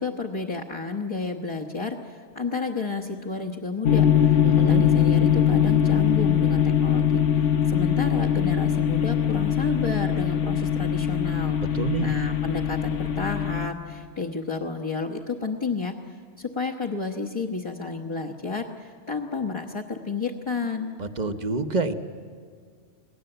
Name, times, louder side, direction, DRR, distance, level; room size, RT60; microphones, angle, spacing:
voice 1, 0.0-4.4 4.7-11.6 12.0-20.9, left 4 dB, 25° left, 0 dB, 1.1 m, -31 dB
sound 1, 3.8-13.7, left 9 dB, 80° left, 1.3 m, -22 dB
voice 2, 4.4-4.8 11.7-12.1 21.0-21.9, right 4 dB, 40° right, 8 dB, 1.1 m, -27 dB
27.5 x 19.0 x 7.9 m, 2.1 s
omnidirectional pair, 1.2 m